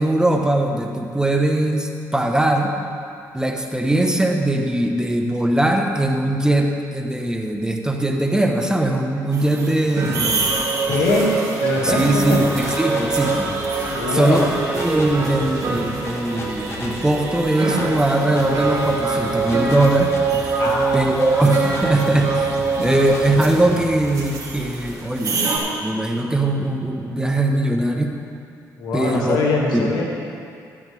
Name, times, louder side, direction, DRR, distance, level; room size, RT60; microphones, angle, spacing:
voice 1, 0.0-2.7 3.3-10.6 11.8-13.5 14.1-14.4 14.7-20.1 20.4-20.6 20.9-22.5 22.8-25.4 25.8-28.2 28.9-29.4 29.7-29.9, right 1 dB, 10° right, 3 dB, 1.2 m, -20 dB
sound 1, 9.3-25.6, right 4 dB, 50° right, 3.2 m, -24 dB
sound 2, 10.0-11.3 11.8-25.5, left 2 dB, 40° left, 1.8 m, -37 dB
voice 2, 10.9-11.3 11.6-12.4 13.9-14.5 20.6-21.3 28.8-30.0, left 3 dB, 80° left, -2 dB, 2.2 m, -22 dB
13.5 x 12.5 x 3.5 m, 2.4 s
supercardioid pair, 70°, 7 cm